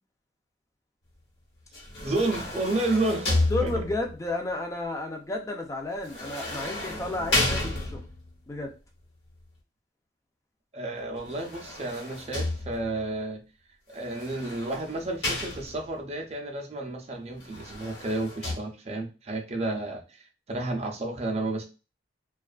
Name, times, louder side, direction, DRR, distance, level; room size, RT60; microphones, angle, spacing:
sound 1, 1.7-4.2 6.0-8.3 11.2-13.0 14.0-16.0 17.4-18.6, left 2 dB, 65° left, 1.1 m, -31 dB
voice 1, 2.0-3.3 3.6-3.8 10.7-13.4 13.9-21.6, right 2 dB, 35° right, 3 dB, 0.5 m, -31 dB
voice 2, 3.5-8.0 8.5-8.7, left 2 dB, 15° left, 3 dB, 0.4 m, -32 dB
2.5 x 2.3 x 2.3 m, 0.32 s
head